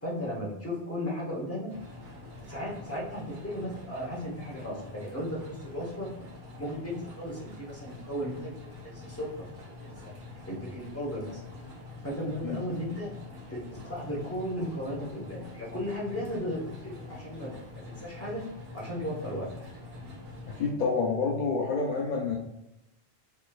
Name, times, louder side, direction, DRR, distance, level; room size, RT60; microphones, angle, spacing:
voice 1, 0.0-1.7 2.5-6.1 6.6-9.5 9.8-10.1 10.5-11.5 12.0-13.1 13.5-18.5 18.7-19.5, equal, 15° left, -4 dB, 1.0 m, -35 dB
sound 1, 1.7-20.7, left 3 dB, 70° right, 1.2 m, -45 dB
voice 2, 20.5-22.4, left 4 dB, 55° left, -3 dB, 0.7 m, -28 dB
4.0 x 3.2 x 2.3 m, 0.88 s
omnidirectional pair, 1.1 m